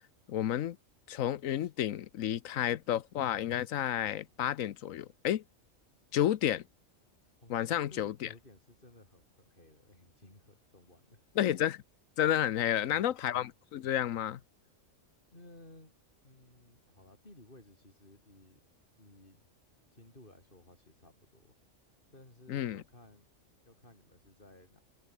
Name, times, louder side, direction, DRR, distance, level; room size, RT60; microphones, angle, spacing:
voice 1, 0.3-0.8 1.1-5.4 6.1-6.6 7.5-8.3 11.4-11.8 12.2-14.4 22.5-22.8, left 11 dB, 80° left, 1.1 m, -31 dB
voice 2, 7.4-11.2 12.5-13.1 15.3-16.0 16.2-18.6 19.0-19.5 19.9-21.5 22.1-23.3 23.6-24.8, left 1 dB, 40° left, 6.6 m, -57 dB
omnidirectional pair, 1.4 m